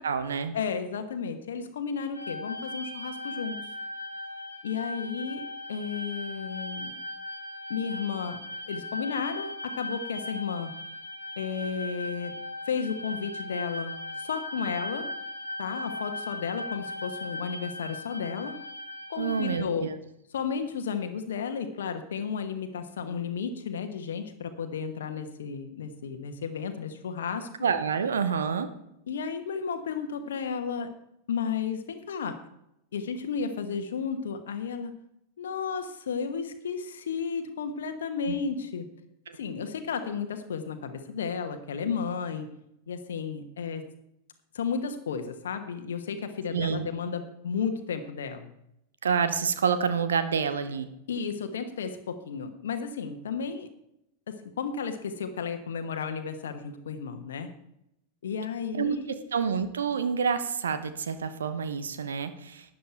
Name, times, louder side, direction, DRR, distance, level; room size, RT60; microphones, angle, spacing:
voice 1, 0.0-0.6 19.2-20.0 27.6-28.7 38.3-38.4 39.3-39.4 46.5-46.9 49.0-50.9 58.7-59.0 59.3-62.7, right 6 dB, 65° right, 11 dB, 0.9 m, -28 dB
voice 2, 0.5-3.6 4.6-6.9 7.7-8.4 8.7-10.7 11.4-12.3 12.6-15.1 15.6-18.6 19.1-19.9 20.3-27.5 29.1-30.9 31.3-32.4 32.9-34.9 35.4-38.8 39.3-42.5 42.9-43.8 44.5-48.5 51.1-53.7 54.3-57.5 58.2-59.2, left 6 dB, 65° left, 7 dB, 1.1 m, -33 dB
sound 1, 2.1-19.6, left 2 dB, 85° left, 1.6 m, -38 dB
12.0 x 9.3 x 4.5 m, 0.80 s
figure-of-eight pair, 90°, 0 cm